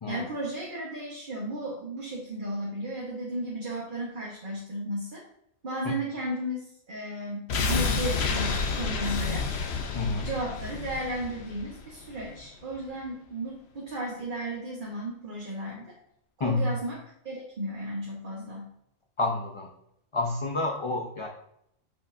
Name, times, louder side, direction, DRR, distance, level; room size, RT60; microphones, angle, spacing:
voice 1, 0.1-5.2 5.6-9.5 10.2-16.0 16.4-17.0 17.2-18.7, right 1 dB, 40° right, -3 dB, 1.3 m, -34 dB
sound 1, 7.5-12.4 12.7-12.8, left 4 dB, 60° left, 0.9 m, -30 dB
voice 2, 9.9-10.3 16.4-16.7 19.2-19.7 20.1-21.3, left 3 dB, 35° left, 2 dB, 0.5 m, -29 dB
8.4 x 5.5 x 2.6 m, 0.74 s
omnidirectional pair, 1.3 m